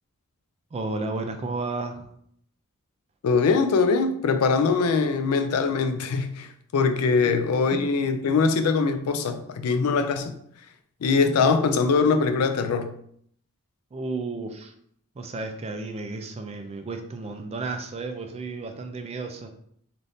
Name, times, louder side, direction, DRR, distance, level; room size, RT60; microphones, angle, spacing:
voice 1, 0.7-2.1 7.2-7.3 7.7-7.8 13.9-14.7 15.2-19.5, right 3 dB, 30° right, 0.3 m, -33 dB
voice 2, 3.2-10.3 11.0-12.9, left 4 dB, 70° left, 0.4 m, -22 dB
3.4 x 2.5 x 2.6 m
head